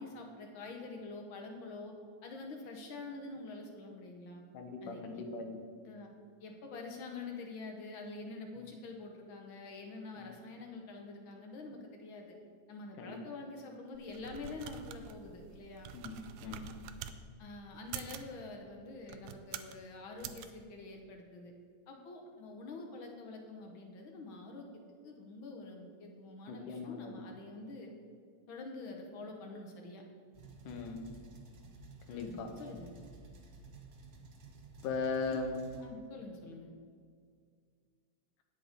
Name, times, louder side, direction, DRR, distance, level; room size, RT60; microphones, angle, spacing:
voice 1, 0.0-1.9 2.2-4.4 4.8-5.3 5.8-6.1 6.4-12.3 12.7-15.9 17.4-21.5 21.9-27.9 28.5-30.0 32.1-32.9 35.3-35.4 35.8-36.7, left 3 dB, 70° left, 2 dB, 1.2 m, -46 dB
voice 2, 4.5-5.6 8.6-8.7 10.2-10.3 13.0-13.2 15.9-16.6 26.5-27.1 30.7-31.0 32.1-32.5 34.8-35.5, left 4 dB, 90° left, 4 dB, 2.6 m, -39 dB
sound 1, 13.9-17.2 17.8-18.3 19.0-19.8 20.2-20.5, right 9 dB, 85° right, 2.1 m, -46 dB
sound 2, 30.3-35.9, right 4 dB, 55° right, 1.4 m, -53 dB
9.6 x 7.7 x 5.1 m, 2.1 s
omnidirectional pair, 3.5 m